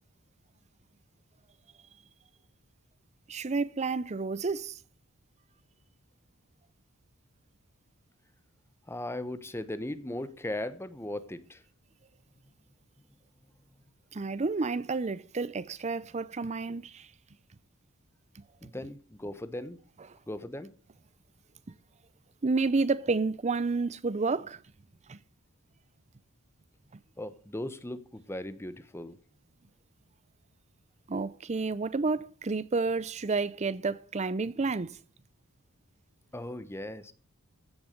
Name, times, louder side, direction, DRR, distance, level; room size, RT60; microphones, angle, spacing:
voice 1, 3.3-4.8 14.1-17.1 18.4-18.5 22.4-24.6 25.1-25.2 31.1-35.0, right 3 dB, 30° right, 0.5 m, -30 dB
voice 2, 8.9-11.6 18.6-19.8 20.3-20.7 22.9-23.0 27.2-29.2 36.3-37.1, left 1 dB, 10° left, 1.0 m, -38 dB
15.5 x 6.9 x 6.5 m
head